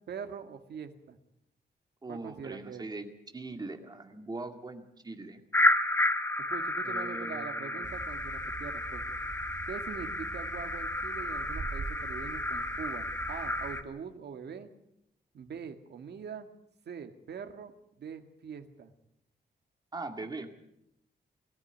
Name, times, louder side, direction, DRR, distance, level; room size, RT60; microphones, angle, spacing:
voice 1, 0.1-1.2 2.1-2.8 6.5-9.2 9.7-14.7 15.3-16.5 16.9-18.9, right 7 dB, 70° right, 6 dB, 1.9 m, -43 dB
voice 2, 2.0-3.1 3.3-5.4 6.8-7.9 19.9-20.5, right 3 dB, 20° right, 5 dB, 2.2 m, -41 dB
sound 1, 5.5-13.8, left 1 dB, 10° left, 1.3 m, -31 dB
sound 2, 7.8-13.8, right 4 dB, 45° right, 2.1 m, -44 dB
22.0 x 14.0 x 9.2 m, 0.79 s
wide cardioid pair, 160°, 18 cm